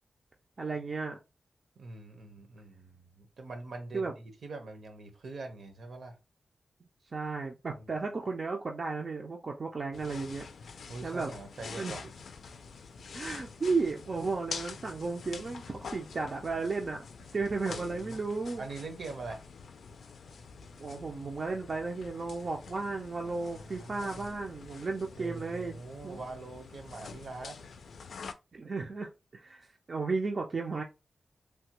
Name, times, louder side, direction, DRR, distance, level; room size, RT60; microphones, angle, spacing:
voice 1, 0.6-1.2 3.9-4.1 7.1-10.4 11.0-11.3 11.8-12.0 13.1-17.0 17.3-18.7 20.8-25.8 26.0-26.2 28.5-30.8, right 4 dB, 40° right, 0.4 m, -34 dB
voice 2, 1.8-6.2 7.7-8.0 10.9-12.0 17.3-17.4 17.7-18.2 18.6-19.4 23.2-24.3 25.2-27.6, right 3 dB, 70° right, 0.8 m, -44 dB
sound 1, 9.9-28.3, left 5 dB, 90° left, 0.4 m, -46 dB
3.3 x 2.2 x 2.9 m
wide cardioid pair, 155°, 0 cm